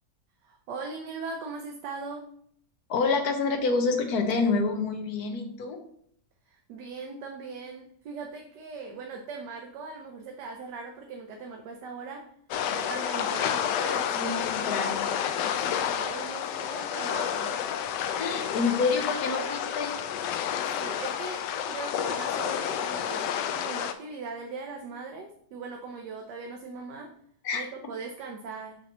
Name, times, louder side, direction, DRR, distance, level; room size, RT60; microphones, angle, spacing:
voice 1, 0.4-2.3 6.5-12.3 12.7-15.1 15.6-17.6 20.8-27.1 27.5-28.8, right 4 dB, 80° right, 3 dB, 1.3 m, -40 dB
voice 2, 2.9-5.8 14.1-15.1 18.2-19.9 27.4-27.6, left 4 dB, 65° left, 4 dB, 1.4 m, -27 dB
sound 1, 12.5-23.9, left 9 dB, 85° left, 1.2 m, -30 dB
6.4 x 6.0 x 3.0 m, 0.66 s
omnidirectional pair, 1.8 m